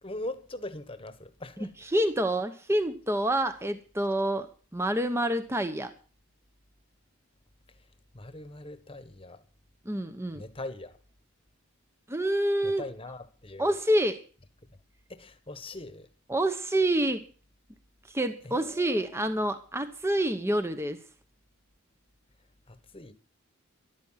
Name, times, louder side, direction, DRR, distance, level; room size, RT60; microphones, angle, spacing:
voice 1, 0.0-1.8 7.7-9.4 10.3-11.0 12.6-13.7 14.7-14.8 15.1-16.1 18.4-19.3 22.7-23.1, left 2 dB, 25° left, 1.3 m, -41 dB
voice 2, 1.9-4.5 4.7-5.9 9.8-10.4 12.1-12.8 13.6-14.2 16.3-17.2 18.1-21.0, right 1 dB, 10° right, 0.9 m, -27 dB
13.5 x 12.0 x 5.7 m
head